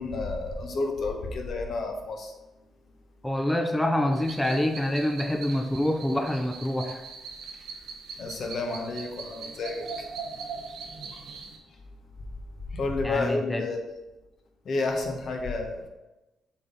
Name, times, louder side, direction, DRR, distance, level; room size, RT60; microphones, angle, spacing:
voice 1, 0.0-2.3 8.2-9.9 11.1-11.2 12.7-13.8 14.6-15.9, left 3 dB, 60° left, 3 dB, 1.1 m, -30 dB
voice 2, 3.2-7.0 13.0-13.7, left 1 dB, 10° left, 5 dB, 0.5 m, -26 dB
sound 1, 4.1-11.6, right 5 dB, 80° right, 1.0 m, -41 dB
7.4 x 4.1 x 3.9 m, 1.0 s
cardioid pair, 90°, 0 cm